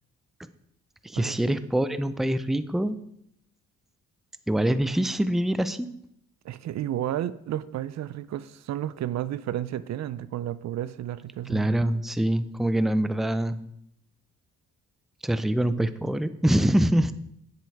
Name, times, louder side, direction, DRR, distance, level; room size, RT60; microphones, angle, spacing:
voice 1, 1.0-3.0 4.5-5.9 11.5-13.6 15.2-17.1, right 1 dB, ahead, 13 dB, 0.5 m, -24 dB
voice 2, 6.4-11.7, right 12 dB, 60° right, 16 dB, 0.5 m, -32 dB
9.4 x 7.8 x 4.7 m, 0.73 s
cardioid pair, 90°, 30 cm